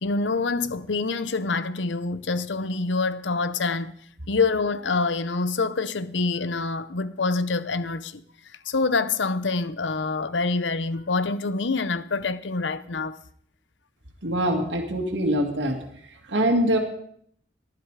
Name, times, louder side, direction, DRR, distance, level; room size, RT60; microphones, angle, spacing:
voice 1, 0.0-3.9 4.3-8.2 8.6-13.2, left 3 dB, 85° left, 0.9 m, -26 dB
voice 2, 14.2-15.8 16.3-16.8, right 1 dB, 85° right, 2.3 m, -23 dB
19.5 x 12.0 x 4.9 m
head